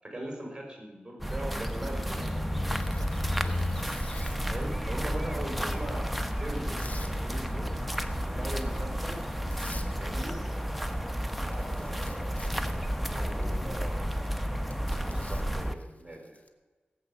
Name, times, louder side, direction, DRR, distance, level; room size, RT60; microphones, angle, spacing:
voice 1, 0.0-2.6 3.0-3.9 4.5-7.7 8.2-9.2 10.0-10.4 11.5-12.4 12.9-14.1 14.4-16.4, right 1 dB, 20° right, 1 dB, 5.7 m, -41 dB
sound 1, 1.2-15.7, equal, ahead, 1.1 m, -31 dB
Tearing, 2.8-4.5 5.3-7.2 7.5-7.8 8.2-8.5 9.2-9.3 9.5-9.9 10.2-10.7 11.0-11.1 11.3-16.5, left 2 dB, 40° left, 1.5 m, -49 dB
18.0 x 8.1 x 7.0 m, 1.3 s
wide cardioid pair, 65°, 4 cm